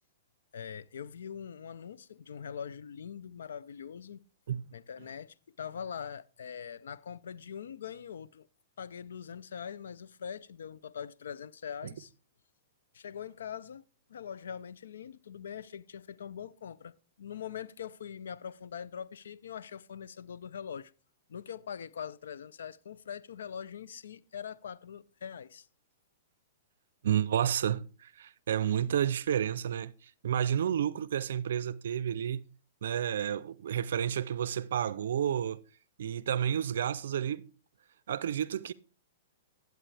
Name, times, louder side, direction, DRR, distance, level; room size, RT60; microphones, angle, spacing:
voice 1, 0.5-4.2 4.7-8.5 8.8-12.1 12.9-13.8 14.1-20.9 21.3-25.7, left 8 dB, 80° left, 0.5 m, -42 dB
voice 2, 27.0-32.4 32.8-35.6 36.0-37.5 38.1-38.7, right 9 dB, 75° right, 0.4 m, -31 dB
12.5 x 8.0 x 3.3 m
hypercardioid pair, 130°, 0 cm